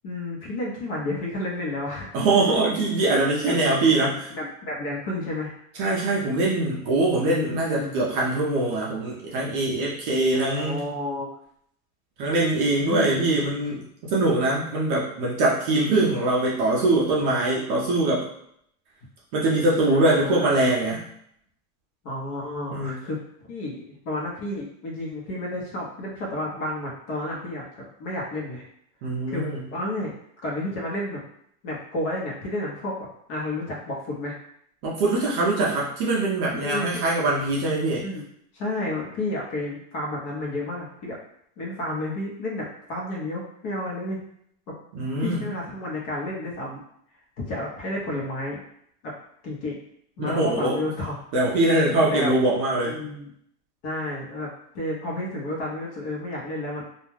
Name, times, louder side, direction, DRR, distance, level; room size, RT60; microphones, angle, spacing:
voice 1, 0.0-2.1 2.8-3.1 3.4-5.6 7.2-8.0 10.3-11.3 12.8-13.2 19.9-20.7 22.0-28.6 29.3-29.5 29.7-31.2 31.6-32.9 33.3-34.3 36.5-37.1 38.0-38.3 38.5-41.2 41.6-44.2 45.2-46.8 47.4-48.6 49.0-49.1 49.4-49.8 50.2-51.2 52.1-52.3 52.8-53.3 53.8-54.5 54.7-56.8, left 1 dB, 40° left, -3 dB, 0.8 m, -31 dB
voice 2, 2.1-4.2 5.8-10.8 12.2-18.3 19.3-21.0 22.7-23.0 29.0-29.6 34.8-38.0 44.9-45.4 50.2-50.8 51.3-53.1, right 2 dB, 35° right, -5 dB, 0.5 m, -23 dB
2.4 x 2.1 x 3.1 m, 0.70 s
supercardioid pair, 155°, 47 cm